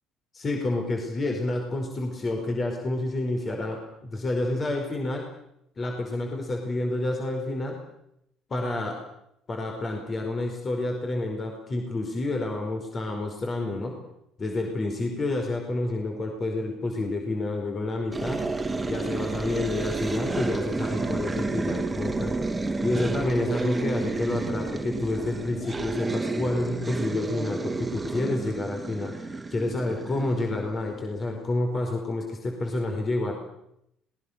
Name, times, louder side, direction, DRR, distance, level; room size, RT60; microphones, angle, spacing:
voice 1, 0.3-5.3 5.8-7.8 8.5-9.0 9.5-14.0 14.4-18.4 18.9-22.3 22.8-33.4, left 2 dB, 35° left, 2 dB, 4.9 m, -29 dB
sound 1, 18.1-31.0, right 3 dB, 15° right, 2.3 m, -31 dB
26.5 x 20.5 x 6.7 m, 0.79 s
supercardioid pair, 80°, 0 cm